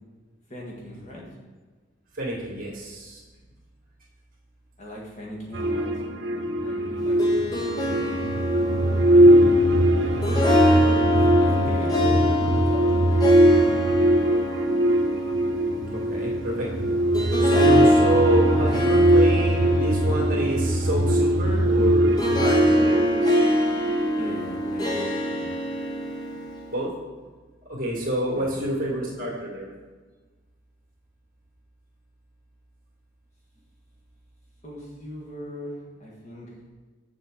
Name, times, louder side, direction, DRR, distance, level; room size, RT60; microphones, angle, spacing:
voice 1, 0.5-1.3 4.8-5.9 6.6-8.3 9.1-9.6 10.6-13.1 24.1-25.5 28.3-28.6 34.6-36.5, equal, 35° left, -4 dB, 1.6 m, -39 dB
voice 2, 2.1-3.2 15.9-16.7 17.4-23.0 26.7-26.9 27.7-29.7, right 1 dB, 45° right, -3 dB, 2.3 m, -28 dB
sound 1, 5.5-24.4, right 1 dB, 70° right, 0.9 m, -21 dB
Harp, 7.0-26.8, equal, 20° left, 0.9 m, -26 dB
7.7 x 7.1 x 3.9 m, 1.4 s
head